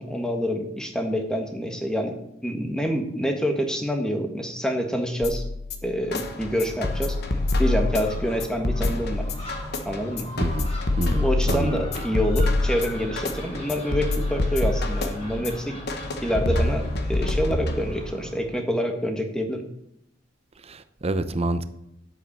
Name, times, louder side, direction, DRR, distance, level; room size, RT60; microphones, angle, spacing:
voice 1, 0.0-5.4 5.8-7.2 7.6-9.3 9.8-10.3 11.2-15.8 16.2-19.6, equal, 5° left, 4 dB, 1.4 m, -27 dB
sound 1, 5.2-18.2, left 2 dB, 55° left, 1.3 m, -26 dB
Gull seagull, 6.0-18.4, equal, 35° left, 4.5 m, -39 dB
voice 2, 10.4-10.7 11.0-11.8 20.6-21.6, right 2 dB, 30° right, 11 dB, 0.7 m, -27 dB
10.0 x 8.1 x 6.6 m, 0.79 s
head